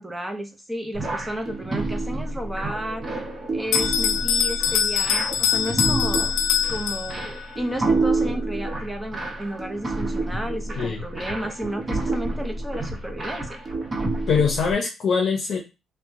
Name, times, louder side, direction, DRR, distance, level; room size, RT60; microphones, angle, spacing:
voice 1, 0.0-3.2 3.5-6.3 6.7-13.6, equal, 5° right, 4 dB, 0.8 m, -33 dB
sound 1, 0.9-14.7, right 2 dB, 30° right, 1.0 m, -28 dB
Bell, 3.7-7.4, left 8 dB, 85° left, 0.3 m, -23 dB
voice 2, 14.3-15.6, left 6 dB, 60° left, 1 dB, 0.7 m, -22 dB
2.8 x 2.2 x 3.7 m, 0.26 s
cardioid pair, 90°, 0 cm